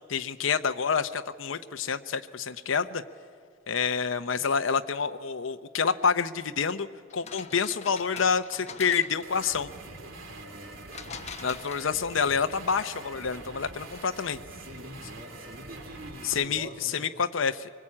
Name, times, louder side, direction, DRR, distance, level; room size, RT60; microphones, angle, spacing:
voice 1, 0.1-3.0 3.7-6.9 7.1-9.7 11.4-14.4 16.2-17.7, left 6 dB, 75° left, 9 dB, 0.7 m, -28 dB
sound 1, 7.1-9.4 10.9-12.2, left 6 dB, 35° left, 1.1 m, -43 dB
sound 2, 9.2-16.4, right 2 dB, 85° right, 2.5 m, -44 dB
voice 2, 10.3-10.8 14.5-17.1, right 1 dB, 50° right, 2 dB, 1.9 m, -45 dB
24.0 x 20.0 x 8.7 m, 2.1 s
head